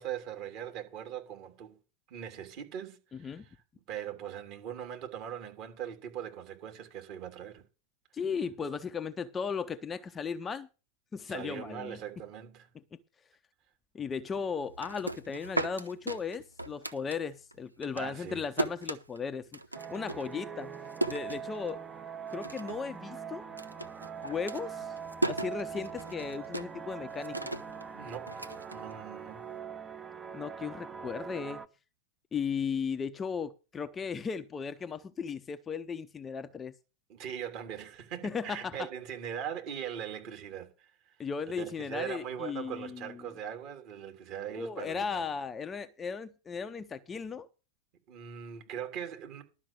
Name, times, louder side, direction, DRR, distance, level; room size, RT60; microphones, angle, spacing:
voice 1, 0.0-1.8 2.1-3.5 3.9-7.6 11.3-12.7 17.9-18.4 27.9-29.5 37.1-41.1 41.6-45.2 48.1-49.4, right 9 dB, 40° right, 3.1 m, -41 dB
voice 2, 3.1-3.4 8.1-10.7 11.1-12.0 12.9-13.0 13.9-19.5 19.9-20.7 21.1-21.8 22.3-23.5 24.2-25.0 25.3-27.4 30.3-31.6 32.3-36.7 38.2-38.9 41.2-43.3 44.5-47.5, left 6 dB, 20° left, 0.7 m, -36 dB
sound 1, 14.6-17.5 17.8-22.0 22.3-22.9 23.2-29.4, right 2 dB, 85° right, 0.8 m, -37 dB
sound 2, 19.7-31.7, right 7 dB, 20° right, 0.9 m, -42 dB
12.0 x 6.1 x 7.4 m
figure-of-eight pair, 90°, 0 cm